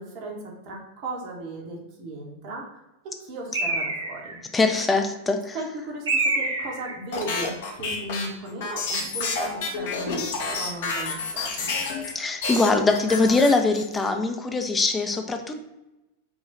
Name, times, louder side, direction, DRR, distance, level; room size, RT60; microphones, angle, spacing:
voice 1, 0.0-2.7 3.0-4.4 5.5-11.7, right 2 dB, 45° right, 0 dB, 1.1 m, -36 dB
Bird, 3.5-4.4 6.1-7.0, right 2 dB, 70° right, 0.7 m, -26 dB
voice 2, 4.5-5.6 12.1-15.6, left 3 dB, 15° left, 5 dB, 0.5 m, -22 dB
sound 1, 7.1-12.1 12.4-14.1, left 4 dB, 55° left, 0.8 m, -29 dB
4.9 x 2.4 x 3.9 m, 0.95 s
figure-of-eight pair, 90°, 0 cm